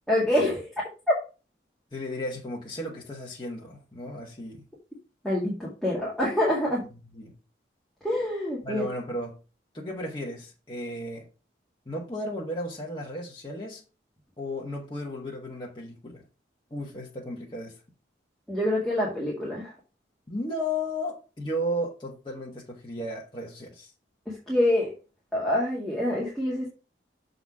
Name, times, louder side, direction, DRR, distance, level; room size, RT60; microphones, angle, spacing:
voice 1, 0.1-0.7 5.2-6.8 8.0-8.8 18.5-19.7 24.3-24.9 25.3-26.7, left 1 dB, ahead, 2.0 m, -26 dB
voice 2, 1.9-4.6 7.1-7.3 8.6-9.4 9.7-11.3 11.8-13.8 14.4-16.2 16.7-17.8 20.3-23.9, equal, 25° left, 1.3 m, -34 dB
7.0 x 4.0 x 6.0 m
head